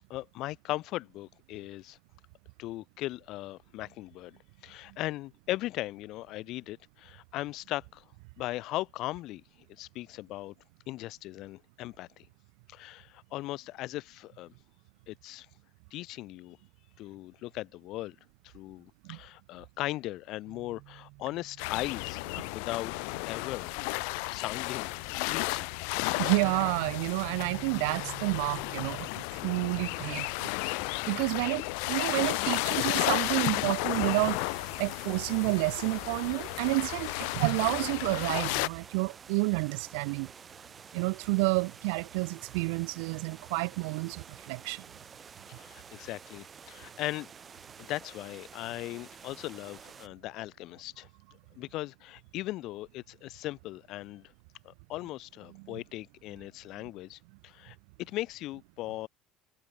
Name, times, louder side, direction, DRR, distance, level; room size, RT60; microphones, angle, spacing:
voice 1, 0.1-2.0 2.6-4.4 4.6-8.0 8.4-9.4 9.7-10.5 10.9-12.3 12.7-14.5 15.1-15.5 15.9-16.6 17.0-18.1 18.4-23.8 24.1-25.7 29.2-29.3 45.5-47.3 47.8-51.1 51.6-54.3 54.6-59.1, left 17 dB, 45° left, 1.2 m, -38 dB
sound 1, 20.5-29.1, right 24 dB, 55° right, 3.0 m, -50 dB
Atlantic Ocean Ocean Waves Ambience sound, 21.6-38.7, left 40 dB or more, 75° left, 0.7 m, -33 dB
voice 2, 26.2-30.5 31.0-31.6 31.9-34.4 34.8-40.3 40.9-44.8 55.6-55.7, right 33 dB, 80° right, 2.1 m, -30 dB
sound 2, 33.9-50.1, right 6 dB, 20° right, 2.5 m, -50 dB
cardioid pair, 180°, 0 cm